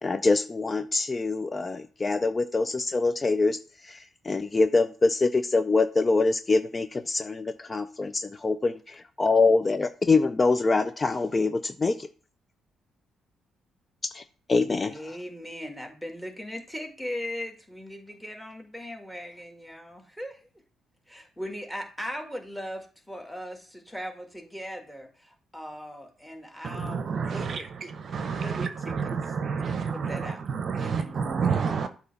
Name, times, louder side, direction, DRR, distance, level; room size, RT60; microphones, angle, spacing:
voice 1, 0.0-3.6 3.8-12.1 14.1-14.2 14.5-14.9, left 3 dB, 25° left, 0.4 m, -24 dB
voice 2, 14.8-20.5 21.1-27.7 28.3-30.4 30.8-31.2, equal, 5° left, 1.7 m, -39 dB
voice 3, 26.6-27.6 28.1-31.9, right 5 dB, 50° right, 0.7 m, -29 dB
8.0 x 3.0 x 5.6 m
cardioid pair, 90°, 0 cm